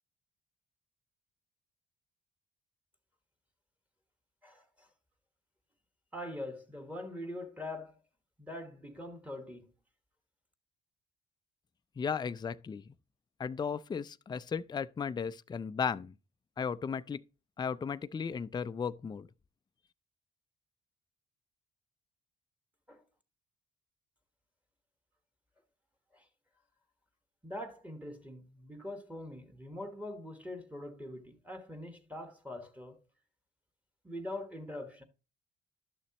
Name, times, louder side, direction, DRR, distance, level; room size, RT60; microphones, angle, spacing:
voice 1, 4.4-4.9 6.1-8.0 8.4-9.7 22.9-23.0 26.1-26.3 27.4-33.0 34.0-35.0, left 1 dB, 5° right, 1.4 m, -43 dB
voice 2, 12.0-12.9 13.4-16.1 16.6-17.2 17.6-19.3, left 6 dB, 20° left, 0.4 m, -35 dB
11.5 x 6.6 x 3.0 m
cardioid pair, 90°, 20 cm